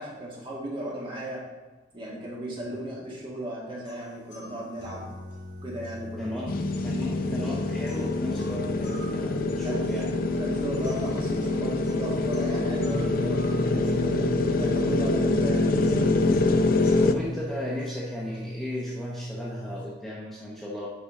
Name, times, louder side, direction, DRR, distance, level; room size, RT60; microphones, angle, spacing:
voice 1, 0.0-1.5 1.9-5.1 5.6-6.5 9.6-14.3 14.6-16.0, right 1 dB, 30° right, -4 dB, 1.9 m, -36 dB
sound 1, 3.8-19.8, equal, 85° left, 2.5 m, -39 dB
voice 2, 6.2-6.5 6.8-10.1 17.0-20.9, left 1 dB, ahead, -5 dB, 0.8 m, -35 dB
sound 2, 6.5-17.1, left 2 dB, 55° left, 0.5 m, -25 dB
8.3 x 5.4 x 3.7 m, 1.2 s
head